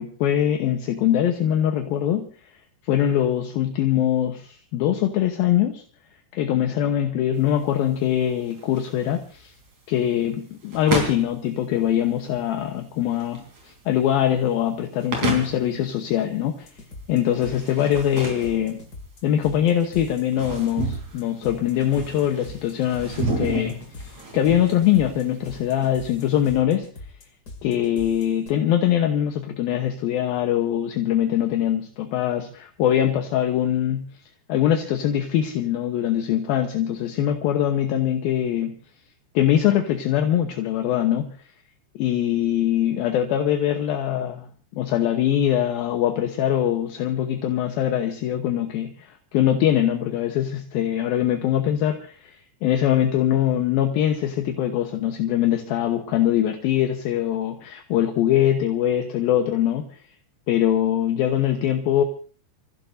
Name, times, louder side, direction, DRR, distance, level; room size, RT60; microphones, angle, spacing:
voice 1, 0.0-2.3 2.9-5.8 6.3-9.5 9.9-13.4 13.9-16.7 17.1-18.8 19.2-26.9 27.6-34.1 34.5-38.8 39.3-41.3 42.0-44.5 44.7-59.9 60.5-62.0, left 11 dB, 70° left, 4 dB, 2.5 m, -22 dB
sound 1, 7.4-26.5, right 3 dB, 40° right, 4.5 m, -33 dB
sound 2, 16.6-28.5, left 2 dB, 30° left, 2.1 m, -42 dB
29.0 x 15.5 x 2.7 m, 0.39 s
omnidirectional pair, 5.1 m